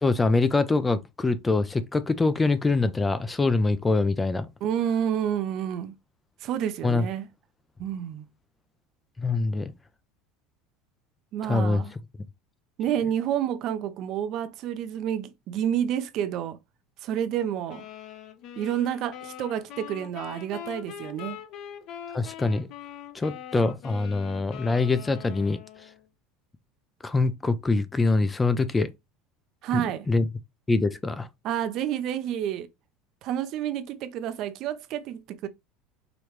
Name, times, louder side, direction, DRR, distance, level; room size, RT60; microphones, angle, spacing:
voice 1, 0.0-4.5 6.8-7.1 9.2-9.7 11.4-11.8 22.1-22.7 23.1-25.6 27.0-28.9 29.7-30.3 30.7-31.3, left 3 dB, 10° left, 0.4 m, -24 dB
voice 2, 4.6-5.9 6.4-7.3 7.8-8.3 11.3-11.9 12.8-16.6 17.0-17.8 18.6-21.4 29.6-30.1 31.4-32.7 33.2-35.5, right 10 dB, 45° right, 0.6 m, -29 dB
sound 1, 17.7-26.0, left 10 dB, 45° left, 0.8 m, -42 dB
5.0 x 3.0 x 3.1 m
supercardioid pair, 150°, 0 cm